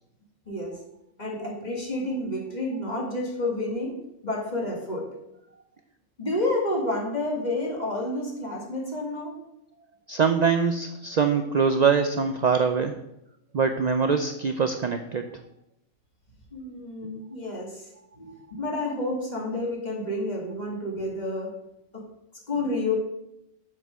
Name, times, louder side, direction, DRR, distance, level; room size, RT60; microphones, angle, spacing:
voice 1, 0.5-0.8 1.2-4.0 4.2-5.1 6.2-9.3 16.5-17.8 18.2-21.5 21.9-22.0 22.5-22.9, left 2 dB, 30° left, -1 dB, 2.1 m, -30 dB
voice 2, 10.1-13.0 13.5-15.3, right 5 dB, 65° right, 7 dB, 0.4 m, -23 dB
7.8 x 5.5 x 6.6 m, 0.82 s
omnidirectional pair, 1.4 m